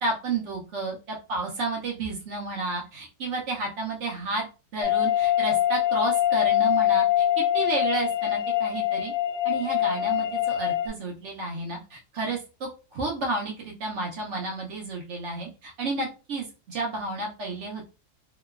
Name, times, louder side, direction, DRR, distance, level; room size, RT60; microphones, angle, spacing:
voice 1, 0.0-4.5 4.7-9.1 9.4-17.9, right 3 dB, 65° right, 0 dB, 0.7 m, -31 dB
sound 1, 4.8-10.9, left 11 dB, 75° left, 1.0 m, -24 dB
2.9 x 2.1 x 2.3 m, 0.32 s
omnidirectional pair, 1.7 m